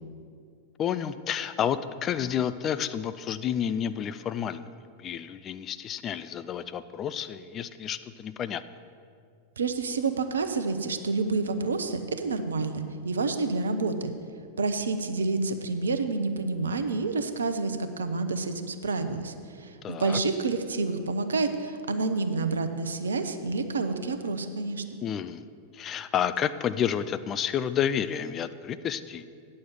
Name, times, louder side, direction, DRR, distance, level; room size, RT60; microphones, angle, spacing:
voice 1, 0.8-4.7 5.0-8.6 19.8-20.2 25.0-25.4 25.7-29.3, left 9 dB, 30° left, 13 dB, 0.4 m, -30 dB
voice 2, 9.6-14.1 14.6-24.8, right 3 dB, 70° right, 9 dB, 0.7 m, -29 dB
9.3 x 6.5 x 7.4 m, 2.3 s
figure-of-eight pair, 90°, 0 cm